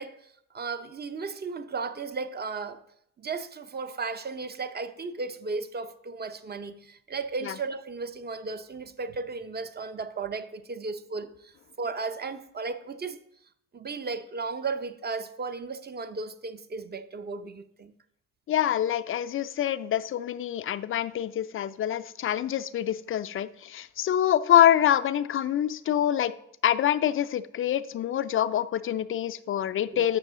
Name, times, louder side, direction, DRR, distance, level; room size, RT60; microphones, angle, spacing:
voice 1, 0.0-2.8 3.2-13.2 13.7-17.9 29.9-30.2, right 4 dB, 25° right, 0.6 m, -35 dB
voice 2, 18.5-26.3 26.6-30.2, left 10 dB, 35° left, 0.4 m, -25 dB
7.4 x 6.0 x 3.7 m
figure-of-eight pair, 45°, 40 cm